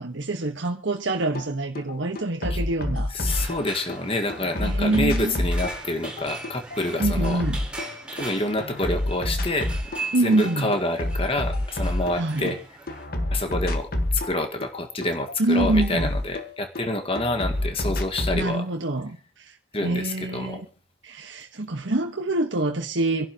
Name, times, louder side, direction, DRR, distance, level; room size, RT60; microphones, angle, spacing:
voice 1, 0.0-3.1 4.6-5.4 7.0-7.7 10.1-10.7 12.1-12.6 15.4-16.2 18.3-19.5 19.8-20.6 21.0-23.3, right 2 dB, 70° right, 1.4 m, -25 dB
sound 1, 1.3-1.5 1.7-4.0 4.3-8.3 8.6-10.1 10.3-12.6 12.9-16.8 17.2-18.4, left 1 dB, 50° left, 1.6 m, -28 dB
voice 2, 3.1-7.4 8.1-9.9 10.2-12.6 13.3-18.6 19.7-20.6, left 2 dB, 30° left, 1.7 m, -28 dB
sound 2, 3.3-13.0, right 3 dB, 5° right, 4.1 m, -39 dB
27.0 x 11.5 x 3.0 m
head